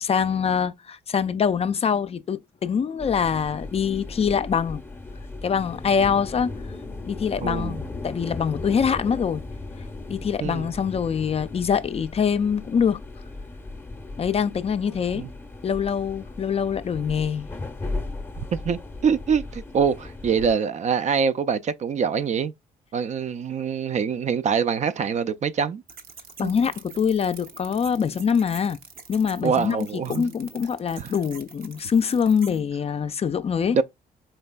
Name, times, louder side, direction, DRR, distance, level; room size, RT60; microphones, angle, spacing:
voice 1, 0.0-4.8 5.4-6.5 7.0-9.4 10.1-13.0 14.2-15.2 15.6-17.5 26.4-28.8 29.1-33.8, left 7 dB, 40° left, 0.4 m, -24 dB
sound 1, 3.0-20.5, left 3 dB, 15° left, 0.7 m, -37 dB
voice 2, 7.4-7.8 10.4-10.7 15.1-15.3 18.4-22.5 22.9-25.8 26.4-26.5 29.4-30.3 31.0-31.1 33.7-33.8, right 6 dB, 45° right, 0.4 m, -24 dB
sound 2, 25.9-32.6, right 5 dB, 60° right, 0.8 m, -46 dB
4.4 x 3.1 x 2.2 m
supercardioid pair, 60°, 17 cm